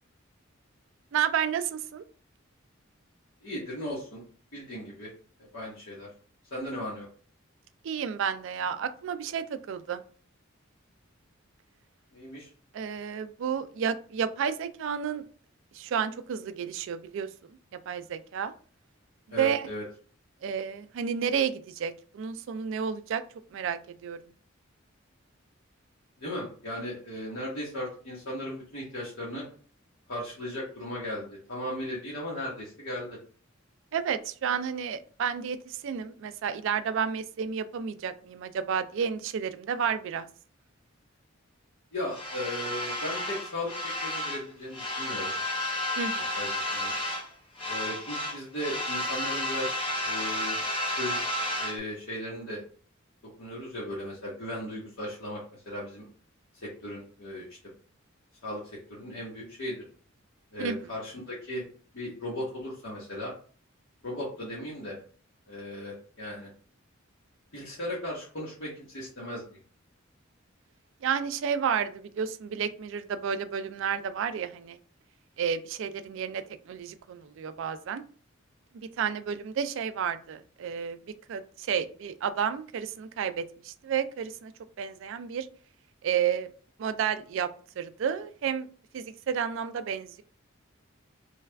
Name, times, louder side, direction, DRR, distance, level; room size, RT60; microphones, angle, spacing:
voice 1, 1.1-2.0 7.8-10.0 12.7-15.2 15.7-17.6 17.9-18.5 19.3-19.7 20.4-23.2 23.5-24.2 33.9-40.3 46.0-46.4 60.6-60.9 71.0-74.8 75.4-78.0 78.7-84.5 84.8-85.5 86.0-86.5 86.8-87.5 87.8-88.7 88.9-90.2, right 7 dB, 65° right, 11 dB, 0.3 m, -31 dB
voice 2, 3.4-4.2 4.5-5.1 5.5-6.1 6.5-7.1 12.1-12.5 19.3-19.8 26.2-29.4 30.1-33.2 41.9-43.7 44.0-45.3 46.3-46.9 47.6-50.6 51.0-52.6 53.4-55.4 55.7-56.0 56.6-57.4 58.4-58.6 58.9-59.8 60.5-61.6 61.9-63.3 64.0-65.0 65.5-66.5 67.5-69.6, left 1 dB, 65° left, -7 dB, 1.0 m, -36 dB
sound 1, 42.1-44.4 44.7-47.3 47.6-51.8, left 1 dB, 25° left, 0.7 m, -32 dB
3.2 x 2.3 x 3.2 m, 0.43 s
head